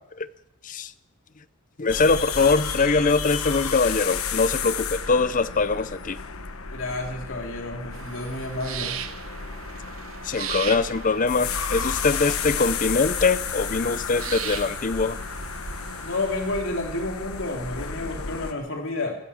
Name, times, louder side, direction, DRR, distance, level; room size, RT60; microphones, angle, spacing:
voice 1, 1.8-6.2 10.2-15.2, left 4 dB, 40° left, 16 dB, 0.6 m, -23 dB
sound 1, 1.9-18.5, left 6 dB, 85° left, 1.2 m, -32 dB
voice 2, 6.7-9.0 16.0-19.2, left 2 dB, 65° left, 2 dB, 3.1 m, -30 dB
sound 2, 7.9-16.6, right 8 dB, 75° right, 0.9 m, -38 dB
16.0 x 11.0 x 7.1 m, 0.85 s
head